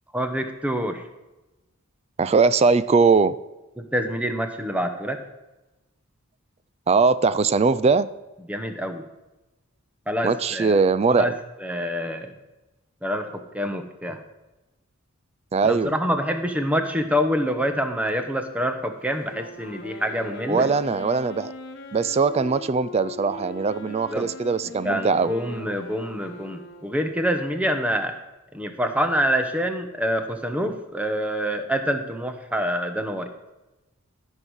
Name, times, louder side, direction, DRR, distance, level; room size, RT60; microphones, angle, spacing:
voice 1, 0.1-1.0 3.8-5.2 8.5-9.0 10.1-10.8 11.1-11.3 11.6-12.3 13.0-14.2 15.6-20.7 24.1-24.3 24.8-28.1 28.5-33.3, equal, 5° right, 7 dB, 0.9 m, -26 dB
voice 2, 2.2-3.4 6.9-8.1 10.2-11.3 15.5-15.9 20.5-21.5 21.9-25.3, right 4 dB, 30° right, 16 dB, 0.3 m, -20 dB
Wind instrument woodwind instrument, 19.3-27.1, left 2 dB, 55° left, 1.2 m, -40 dB
13.5 x 5.5 x 6.3 m, 1.1 s
head